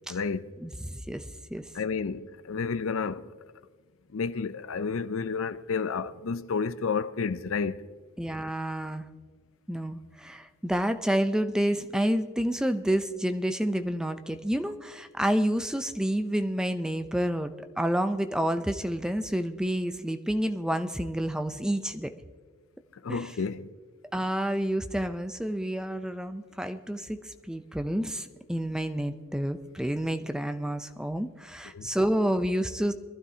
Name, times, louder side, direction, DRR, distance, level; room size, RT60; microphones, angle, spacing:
voice 1, 0.1-0.5 1.7-3.4 4.1-7.9 22.9-23.7 31.7-31.9, left 5 dB, 70° left, 0.5 m, -31 dB
voice 2, 0.6-1.3 1.5-1.6 8.2-9.1 9.7-22.1 23.1-23.3 24.1-32.9, equal, 5° right, 0.5 m, -29 dB
22.5 x 12.0 x 2.8 m
head